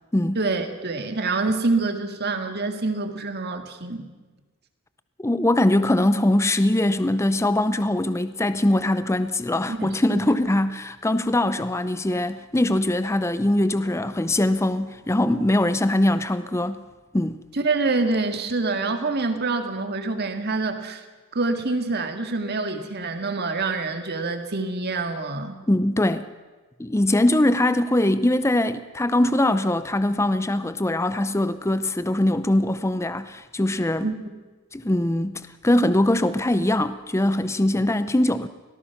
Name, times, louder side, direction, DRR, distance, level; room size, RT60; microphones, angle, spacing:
voice 1, 0.4-4.1 9.7-10.2 17.5-21.0 21.3-25.6 34.0-34.1, right 3 dB, 50° right, 6 dB, 1.9 m, -26 dB
voice 2, 5.2-16.8 17.1-17.4 25.7-26.2 26.8-34.1 34.7-38.5, left 1 dB, 15° left, 12 dB, 0.5 m, -22 dB
24.5 x 18.0 x 5.9 m, 1.3 s
head